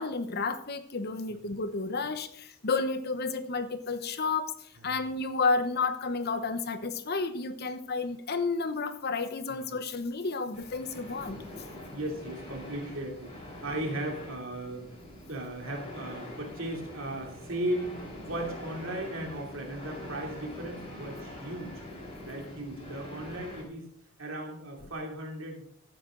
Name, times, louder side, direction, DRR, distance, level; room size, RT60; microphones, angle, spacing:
voice 1, 0.0-11.4, left 4 dB, 45° left, 10 dB, 0.9 m, -31 dB
sound 1, 10.5-23.6, left 1 dB, 25° left, 3.9 m, -44 dB
voice 2, 11.9-15.0 15.3-21.8 22.2-23.9 24.2-25.7, right 1 dB, 60° right, 1 dB, 2.8 m, -36 dB
15.0 x 8.9 x 3.8 m, 0.65 s
head